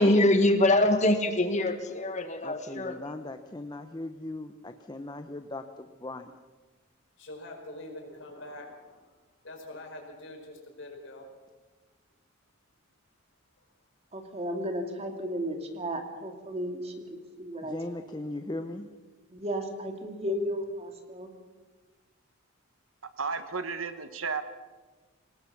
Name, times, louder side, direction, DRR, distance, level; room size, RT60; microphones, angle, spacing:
voice 1, 0.0-3.1, left 1 dB, 35° left, 8 dB, 1.7 m, -24 dB
voice 2, 2.4-6.3 17.6-18.9, left 2 dB, 20° left, 7 dB, 0.8 m, -38 dB
voice 3, 7.2-9.2 9.4-11.3, left 1 dB, 65° left, 2 dB, 5.0 m, -44 dB
voice 4, 14.1-18.1 19.3-20.6 21.2-21.3, equal, 30° right, 4 dB, 2.4 m, -34 dB
voice 5, 23.2-24.4, right 5 dB, 85° right, 10 dB, 1.4 m, -33 dB
25.5 x 19.0 x 5.9 m, 1.3 s
head